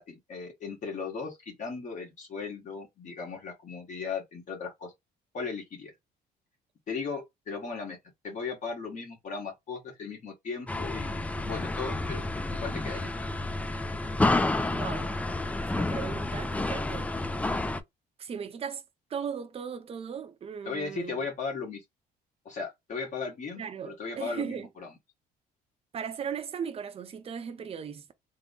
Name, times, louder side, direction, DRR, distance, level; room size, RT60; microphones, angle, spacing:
voice 1, 0.0-4.9 5.3-5.9 6.9-8.0 8.2-13.1 20.6-21.8 22.4-24.9, left 5 dB, 45° left, 1.5 m, -37 dB
sound 1, 10.7-17.8, left 2 dB, 10° left, 0.3 m, -30 dB
voice 2, 14.7-15.1 15.6-17.1 18.2-18.8 19.1-21.2 23.6-24.7 25.9-28.1, right 7 dB, 35° right, 0.6 m, -37 dB
3.6 x 2.1 x 3.7 m
cardioid pair, 110°, 17 cm